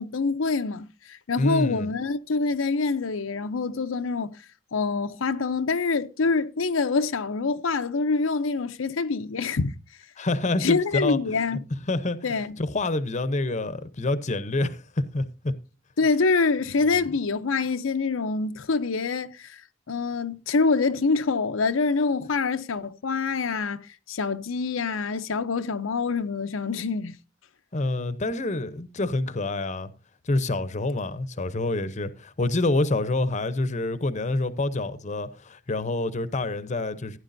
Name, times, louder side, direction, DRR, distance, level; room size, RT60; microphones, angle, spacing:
voice 1, 0.0-4.4 4.7-9.7 10.6-11.6 12.2-12.6 16.0-19.6 19.9-27.2, left 4 dB, 90° left, 0.7 m, -25 dB
voice 2, 1.4-2.0 10.2-11.2 11.9-12.3 12.6-14.8 15.1-15.5 27.7-29.9 30.3-37.2, left 2 dB, 35° left, 0.8 m, -27 dB
16.0 x 9.7 x 2.6 m
head